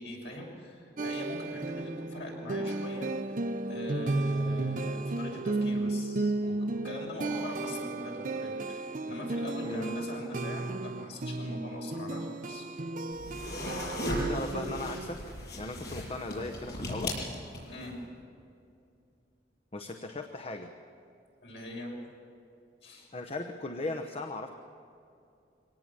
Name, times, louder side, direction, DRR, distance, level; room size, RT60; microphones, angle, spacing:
voice 1, 0.0-3.4 3.7-12.7 17.7-18.0 21.4-21.9 22.8-23.1, left 1 dB, 85° left, -1 dB, 6.7 m, -42 dB
sound 1, 1.0-15.1, right 2 dB, 50° right, 0.7 m, -34 dB
voice 2, 9.6-10.0 14.3-15.2 15.6-17.1 19.7-20.7 23.1-24.5, left 2 dB, 35° left, 4 dB, 1.0 m, -37 dB
sound 2, 13.1-17.9, equal, 65° left, 7.3 m, -36 dB
24.5 x 18.0 x 7.5 m, 2.6 s
head